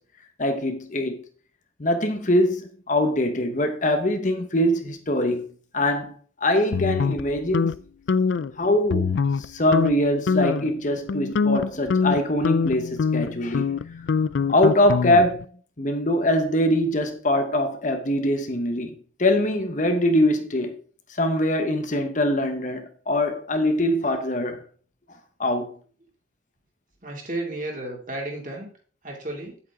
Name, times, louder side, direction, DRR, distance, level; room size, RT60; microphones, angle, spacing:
voice 1, 0.4-1.2 1.8-5.4 5.7-6.1 6.4-7.7 8.4-9.1 9.4-13.7 14.5-15.5 15.8-18.9 19.2-20.7 21.2-24.6 25.4-25.7, left 1 dB, 40° left, 1.1 m, -23 dB
sound 1, 6.7-7.8 8.1-8.5 8.9-9.5 9.7-9.9 10.3-10.7 11.1-15.4, left 5 dB, 65° left, 0.4 m, -24 dB
voice 2, 27.0-28.7 29.0-29.6, right 2 dB, 40° right, 2.7 m, -33 dB
9.4 x 8.3 x 3.7 m
head